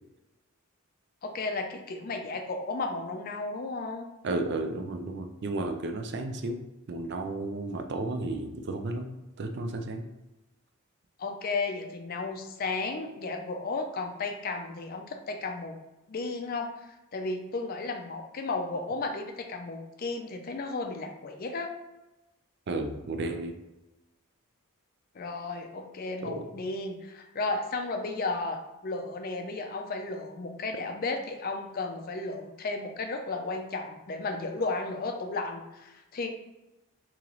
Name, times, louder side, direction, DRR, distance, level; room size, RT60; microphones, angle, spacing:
voice 1, 1.2-4.1 11.2-15.8 16.1-21.7 25.1-36.3, left 3 dB, 40° left, 4 dB, 0.4 m, -34 dB
voice 2, 4.2-6.6 6.9-9.1 9.4-10.1 22.7-23.6 26.2-26.5, right 2 dB, 50° right, 5 dB, 0.4 m, -33 dB
3.0 x 2.9 x 3.8 m, 1.0 s
head